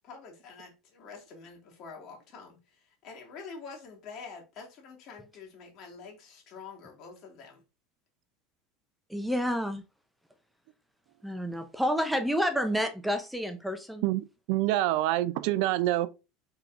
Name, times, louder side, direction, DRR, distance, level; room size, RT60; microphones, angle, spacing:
voice 1, 0.0-7.6, left 5 dB, 55° left, 1.8 m, -47 dB
voice 2, 9.1-9.8 11.2-14.1, equal, ahead, 0.6 m, -29 dB
voice 3, 14.0-16.1, right 15 dB, 70° right, 0.3 m, -26 dB
4.5 x 3.6 x 2.5 m
hypercardioid pair, 95°, 0 cm